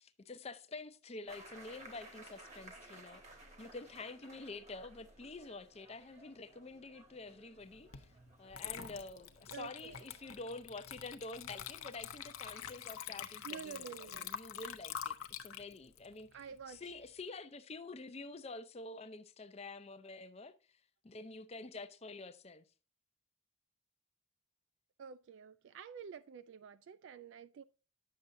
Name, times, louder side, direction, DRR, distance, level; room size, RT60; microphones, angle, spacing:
voice 1, 0.0-3.2 3.6-8.1 8.4-16.3 16.7-22.7, left 3 dB, 30° left, 0.5 m, -48 dB
sound 1, 1.3-10.5, right 2 dB, 30° right, 1.4 m, -58 dB
Water / Liquid, 7.9-8.1 8.5-17.1, left 9 dB, 75° left, 0.7 m, -46 dB
voice 2, 9.5-10.1 13.4-14.4 16.3-16.8 25.0-27.6, right 7 dB, 60° right, 0.3 m, -49 dB
9.6 x 6.6 x 2.6 m
head